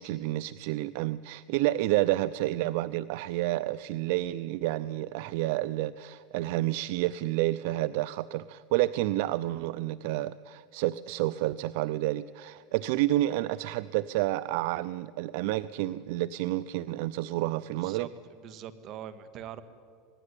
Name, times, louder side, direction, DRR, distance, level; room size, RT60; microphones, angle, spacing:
voice 1, 0.0-18.1, right 16 dB, 70° right, 17 dB, 0.6 m, -29 dB
voice 2, 17.8-19.6, right 10 dB, 45° right, 12 dB, 1.9 m, -43 dB
26.0 x 19.5 x 10.0 m, 2.1 s
supercardioid pair, 125°, 0 cm